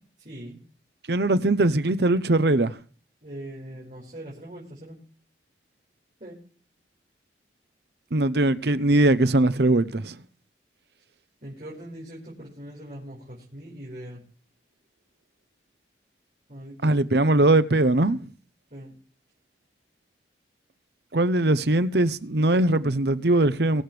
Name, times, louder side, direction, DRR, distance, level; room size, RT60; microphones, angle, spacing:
voice 1, 0.2-0.6 3.2-5.0 6.2-6.4 11.4-14.2 16.5-17.0 18.7-18.9, right 1 dB, 45° right, 5.4 m, -41 dB
voice 2, 1.1-2.8 8.1-10.2 16.8-18.2 21.1-23.8, right 2 dB, 65° right, 0.8 m, -21 dB
23.0 x 8.0 x 3.3 m
head